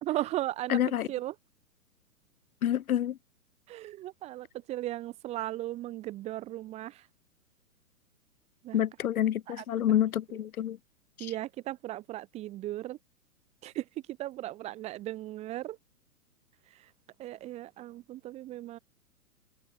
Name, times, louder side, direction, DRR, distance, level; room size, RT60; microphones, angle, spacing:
voice 1, 0.0-0.8 1.1-1.3 3.7-7.1 8.6-8.8 9.5-9.6 11.2-13.0 13.6-15.8 16.7-16.9 17.2-18.8, right 15 dB, 15° right, 0.9 m, -37 dB
voice 2, 0.7-1.1 2.6-3.2 8.7-10.8, left 11 dB, 70° left, 0.5 m, -27 dB
figure-of-eight pair, 120°, 45 cm